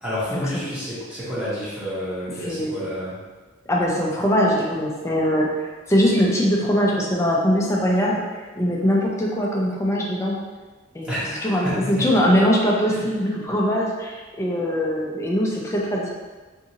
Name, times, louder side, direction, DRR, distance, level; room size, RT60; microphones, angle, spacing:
voice 1, 0.0-3.2 11.0-12.2 12.9-13.1, equal, 5° right, -11 dB, 0.8 m, -29 dB
voice 2, 2.4-2.8 3.7-8.2 8.6-10.4 10.9-11.1 11.4-16.1, equal, 15° left, -3 dB, 0.4 m, -21 dB
2.6 x 2.5 x 2.8 m, 1.3 s
head